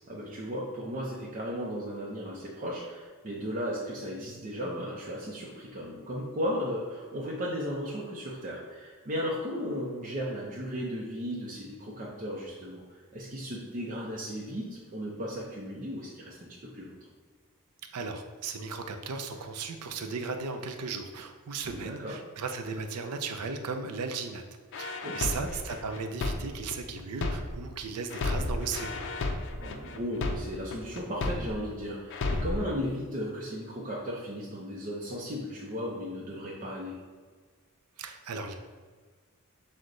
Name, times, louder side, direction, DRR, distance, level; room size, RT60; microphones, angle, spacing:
voice 1, 0.1-16.9 21.6-22.2 25.0-25.4 29.6-37.0, equal, 35° right, -4 dB, 0.6 m, -35 dB
voice 2, 17.9-24.4 24.7-29.0 38.0-38.5, right 4 dB, 80° right, 6 dB, 0.5 m, -36 dB
sound 1, 24.7-27.7 28.1-31.7 32.1-32.7, left 2 dB, 55° left, 0.4 m, -32 dB
6.2 x 2.1 x 3.8 m, 1.5 s
head